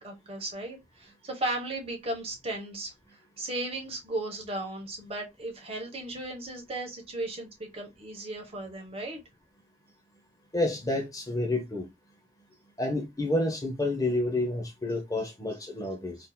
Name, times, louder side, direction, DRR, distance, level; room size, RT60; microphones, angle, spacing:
voice 1, 0.0-9.2, right 2 dB, 30° right, 1.1 m, -36 dB
voice 2, 10.5-11.9 12.8-16.2, left 2 dB, 20° left, 0.7 m, -29 dB
3.8 x 2.7 x 2.2 m
head